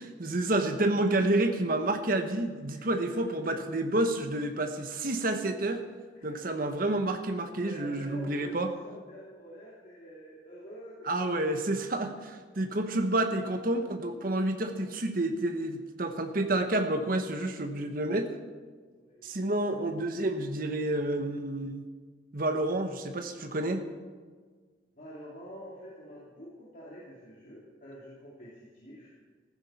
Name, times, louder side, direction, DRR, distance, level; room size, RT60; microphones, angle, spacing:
voice 1, 0.0-5.8 6.2-8.7 11.1-18.3 19.2-21.9 22.3-23.8, right 2 dB, 50° right, 6 dB, 1.1 m, -29 dB
voice 2, 2.7-3.4 6.1-6.5 7.5-11.9 12.4-12.6 18.9-19.7 24.9-29.1, equal, 45° left, -7 dB, 2.6 m, -48 dB
15.0 x 14.0 x 4.3 m, 1.5 s
head